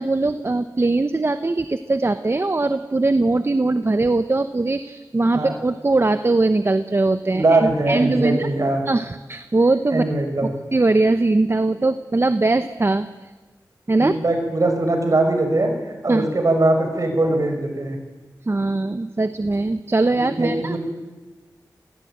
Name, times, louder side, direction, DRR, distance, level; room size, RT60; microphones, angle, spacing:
voice 1, 0.0-8.5 8.9-10.0 10.4-13.1 13.9-14.1 16.1-16.3 18.5-20.8, right 2 dB, 35° right, 11 dB, 1.0 m, -21 dB
voice 2, 7.3-8.8 9.9-10.5 14.0-15.7 16.0-18.0 20.4-20.8, right 2 dB, 50° right, 4 dB, 5.6 m, -21 dB
27.5 x 19.0 x 9.0 m, 1.3 s
wide cardioid pair, 75°, 7 cm